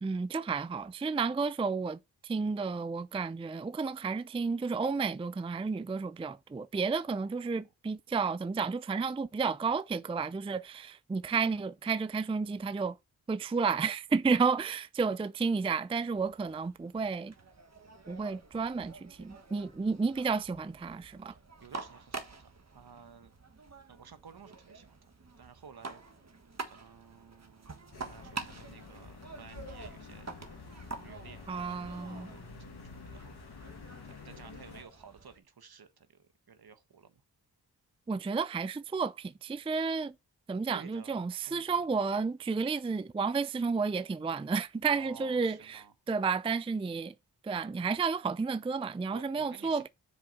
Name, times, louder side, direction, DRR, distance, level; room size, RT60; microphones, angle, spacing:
voice 1, 0.0-13.0 13.3-17.3 18.1-21.3 31.5-32.3 38.1-40.1 40.5-47.1 47.4-49.9, right 5 dB, 15° right, 0.4 m, -32 dB
sound 1, 16.1-35.4, right 4 dB, 40° right, 1.4 m, -47 dB
voice 2, 21.6-23.3 23.9-25.1 25.4-26.0 26.7-30.7 31.0-31.9 32.3-32.7 33.0-33.7 34.0-37.2 40.6-41.8 44.8-45.9 49.1-49.9, right 6 dB, 60° right, 1.2 m, -54 dB
sound 2, 27.9-34.8, left 4 dB, 65° left, 1.6 m, -49 dB
6.9 x 4.9 x 4.6 m
cardioid pair, 40°, 42 cm